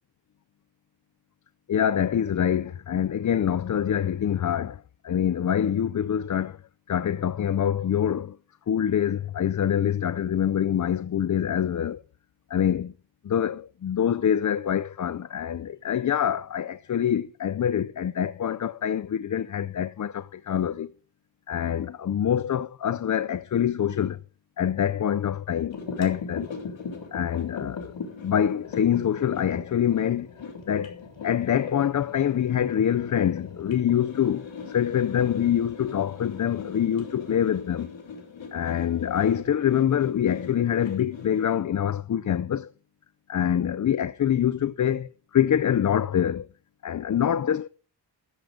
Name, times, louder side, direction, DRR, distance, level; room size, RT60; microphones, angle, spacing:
voice 1, 1.7-6.6 6.9-8.4 8.7-12.0 12.5-12.9 13.2-20.9 21.5-24.2 24.6-26.5 27.1-27.9 28.2-30.3 30.7-37.9 38.5-42.7 43.3-46.5 46.8-47.7, left 9 dB, 45° left, 0.5 m, -25 dB
sound 1, 25.7-41.5, left 5 dB, 85° left, 3.4 m, -40 dB
13.5 x 7.6 x 5.1 m
wide cardioid pair, 90°, 44 cm